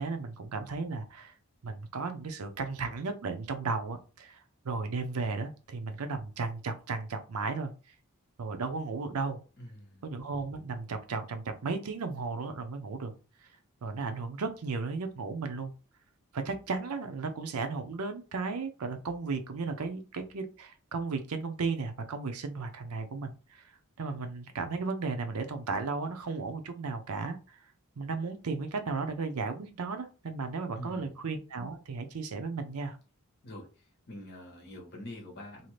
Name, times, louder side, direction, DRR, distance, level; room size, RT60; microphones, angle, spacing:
voice 1, 0.0-1.3 1.6-4.4 4.6-7.7 8.4-9.4 10.0-13.1 13.8-15.7 16.3-23.7 24.0-27.6 28.0-33.0, right 4 dB, 90° right, 8 dB, 0.6 m, -35 dB
voice 2, 9.6-10.0 30.7-31.1 33.4-33.7 34.1-35.7, left 1 dB, 50° left, 1 dB, 1.0 m, -44 dB
2.7 x 2.4 x 3.1 m, 0.33 s
head